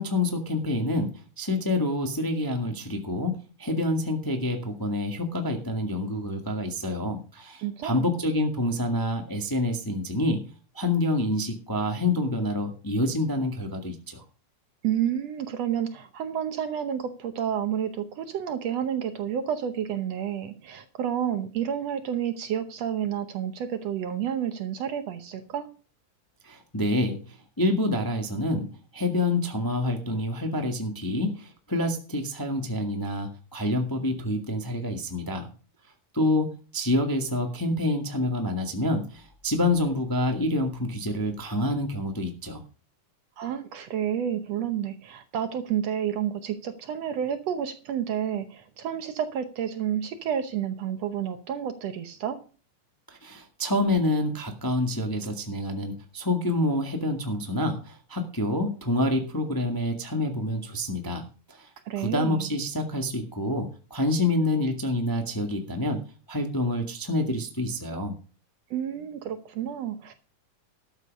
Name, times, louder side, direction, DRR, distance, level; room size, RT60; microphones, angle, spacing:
voice 1, 0.0-10.4 10.7-14.2 26.4-35.5 36.1-42.6 53.2-61.7 62.0-68.2, left 1 dB, 10° left, 3 dB, 1.0 m, -27 dB
voice 2, 7.6-8.1 14.8-25.7 43.4-52.4 61.9-62.5 68.7-70.1, right 9 dB, 65° right, 9 dB, 1.8 m, -30 dB
12.5 x 8.4 x 5.3 m, 0.37 s
omnidirectional pair, 3.6 m